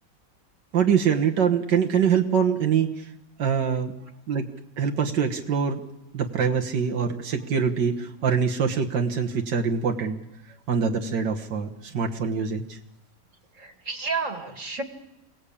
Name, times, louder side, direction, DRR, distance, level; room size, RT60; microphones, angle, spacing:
voice 1, 0.7-3.1 3.4-3.9 4.3-4.5 4.8-5.8 6.1-10.2 10.7-12.8, right 6 dB, 90° right, 2 dB, 2.1 m, -24 dB
voice 2, 13.6-14.8, right 4 dB, 45° right, 6 dB, 2.5 m, -31 dB
28.5 x 19.0 x 8.6 m, 0.93 s
omnidirectional pair, 1.8 m